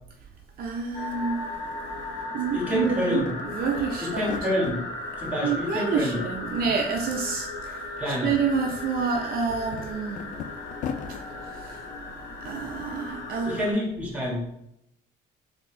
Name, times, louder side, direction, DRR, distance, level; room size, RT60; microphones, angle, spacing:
voice 1, 0.6-1.5 2.3-3.2 3.5-4.3 5.4-7.9 8.2-10.2 11.5-11.8 12.4-13.7, right 5 dB, 60° right, 2 dB, 0.6 m, -28 dB
sound 1, 0.8-0.9 1.1-2.2 2.6-4.8 5.2-5.9 6.2-7.1 7.3-7.5 8.0-11.2, left 7 dB, 50° left, 0.4 m, -39 dB
sound 2, 0.9-13.7, left 2 dB, 85° left, 0.8 m, -36 dB
voice 2, 2.5-3.3 4.0-4.8 5.2-6.2 8.0-8.3 13.4-14.5, left 1 dB, 10° right, -2 dB, 1.5 m, -27 dB
4.3 x 2.9 x 3.3 m, 0.80 s
cardioid pair, 110°, 17 cm